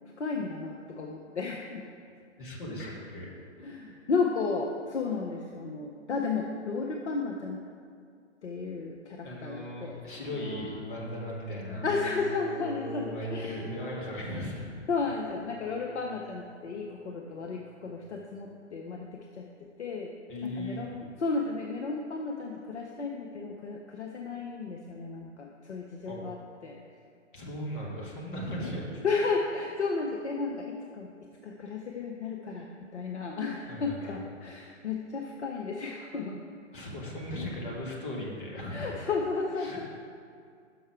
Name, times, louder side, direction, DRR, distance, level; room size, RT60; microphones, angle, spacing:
voice 1, 0.2-1.9 3.6-7.6 8.4-10.0 11.8-13.6 14.9-20.1 20.4-26.4 26.6-26.8 29.0-31.1 31.4-36.4 38.7-39.8, left 4 dB, 65° left, 1 dB, 0.7 m, -33 dB
voice 2, 2.4-3.3 9.2-11.9 13.1-14.7 20.3-21.0 26.0-26.2 27.3-29.0 33.7-34.2 36.7-38.9 39.6-39.8, left 1 dB, 45° left, -2 dB, 1.5 m, -37 dB
sound 1, 10.2-18.3, equal, 5° left, 0.4 m, -43 dB
6.3 x 5.5 x 4.6 m, 2.3 s
figure-of-eight pair, 125°, 37 cm